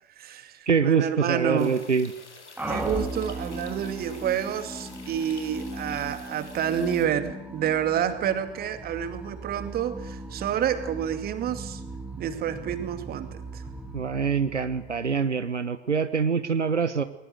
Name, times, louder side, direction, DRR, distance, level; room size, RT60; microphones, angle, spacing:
voice 1, 0.2-1.8 2.7-11.8 12.2-13.6, right 9 dB, 25° right, 9 dB, 2.4 m, -29 dB
voice 2, 0.7-2.1 13.9-17.0, right 5 dB, 80° right, 11 dB, 1.4 m, -25 dB
sound 1, 1.6-7.1, left 4 dB, 75° left, 4.0 m, -48 dB
sound 2, 2.6-15.4, right 1 dB, 5° right, 2.8 m, -38 dB
21.0 x 20.0 x 9.3 m, 0.86 s
figure-of-eight pair, 95°, 35 cm